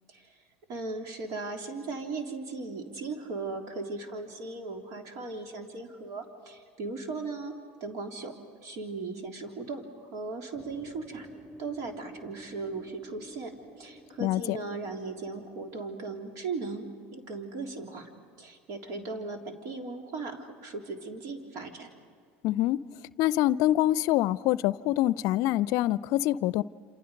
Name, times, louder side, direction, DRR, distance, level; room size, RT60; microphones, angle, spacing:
voice 1, 0.7-7.5 7.8-8.4 8.6-11.3 11.6-18.1 18.4-21.9, right 3 dB, 60° right, 3.7 m, -37 dB
sound 1, 10.5-16.8, left 1 dB, 15° right, 6.3 m, -51 dB
voice 2, 14.2-14.6 22.4-22.8 23.2-26.6, left 15 dB, 65° left, 0.5 m, -25 dB
28.0 x 27.0 x 5.3 m
hypercardioid pair, 90°, 6 cm